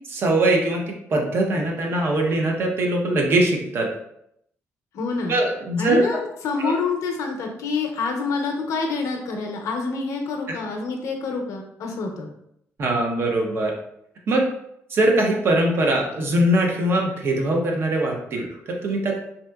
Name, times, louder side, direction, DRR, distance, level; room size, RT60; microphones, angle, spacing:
voice 1, 0.1-0.8 1.1-3.9 5.3-6.0 6.6-6.7 10.5-10.6 12.8-13.7 14.3-14.5 14.9-19.2, right 1 dB, 45° right, 1 dB, 0.6 m, -21 dB
voice 2, 4.9-5.4 5.8-12.3, left 4 dB, 75° left, 2 dB, 0.6 m, -27 dB
3.4 x 2.8 x 2.2 m, 0.76 s
cardioid pair, 170°, 5 cm